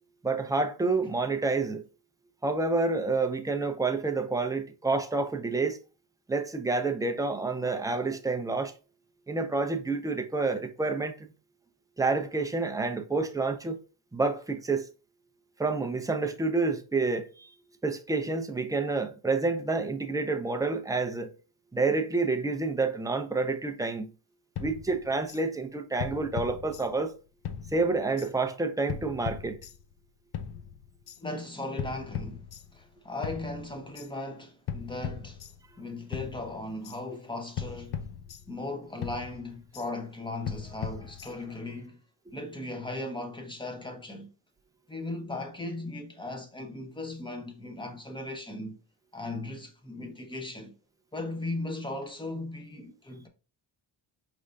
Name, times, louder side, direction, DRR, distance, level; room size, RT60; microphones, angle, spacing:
voice 1, 0.2-1.8 2.4-5.8 6.3-8.7 9.3-11.3 12.0-13.8 14.1-14.9 15.6-17.5 17.8-21.4 21.7-24.1 24.6-27.2 27.7-29.6, right 3 dB, 10° right, 0.4 m, -28 dB
sound 1, 24.6-25.4 26.0-27.2 27.4-28.3 28.9-30.0 30.3-31.2 31.8-32.9 33.2-34.1 34.7-35.8 36.1-37.0 37.6-38.7 39.0-39.9 40.5-41.6, left 8 dB, 55° left, 0.5 m, -39 dB
voice 2, 31.2-35.5 35.8-38.1 38.5-42.0 42.3-44.3 44.9-48.8 49.1-50.7 51.1-53.3, left 2 dB, 10° left, 0.8 m, -37 dB
4.8 x 3.3 x 2.6 m
cardioid pair, 125°, 46 cm